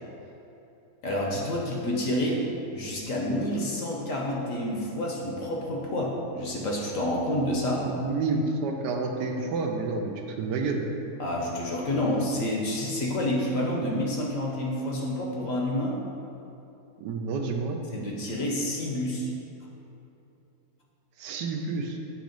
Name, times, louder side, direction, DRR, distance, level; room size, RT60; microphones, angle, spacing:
voice 1, 1.0-2.4 2.7-7.9 11.2-16.0 17.9-19.3, left 1 dB, 60° left, -2 dB, 1.0 m, -28 dB
voice 2, 7.8-10.8 17.0-17.8 21.2-22.0, right 3 dB, 80° right, 3 dB, 1.2 m, -29 dB
7.6 x 3.0 x 5.1 m, 2.9 s
omnidirectional pair, 1.9 m